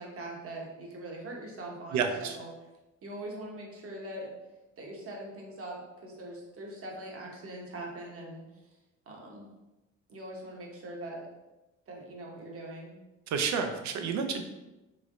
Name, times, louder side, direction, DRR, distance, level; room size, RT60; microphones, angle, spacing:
voice 1, 0.0-2.5 3.0-4.3 4.8-8.4 9.1-9.5 10.1-11.3 11.9-13.0, right 1 dB, 50° right, -1 dB, 1.0 m, -42 dB
voice 2, 1.9-2.4 13.3-14.4, right 6 dB, 70° right, 6 dB, 0.5 m, -30 dB
3.2 x 3.1 x 2.5 m, 1.0 s
cardioid pair, 90°, 30 cm